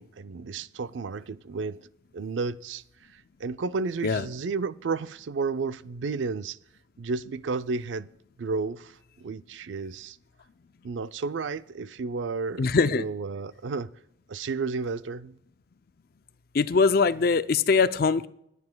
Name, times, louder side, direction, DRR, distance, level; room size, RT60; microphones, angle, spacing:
voice 1, 0.0-1.8 2.1-2.8 3.4-6.6 7.0-8.1 8.4-8.9 9.2-10.2 10.8-13.9 14.3-15.4, right 4 dB, 85° right, 0.4 m, -32 dB
voice 2, 12.6-13.0 16.6-18.3, left 4 dB, 55° left, 0.5 m, -22 dB
29.0 x 9.8 x 2.3 m
head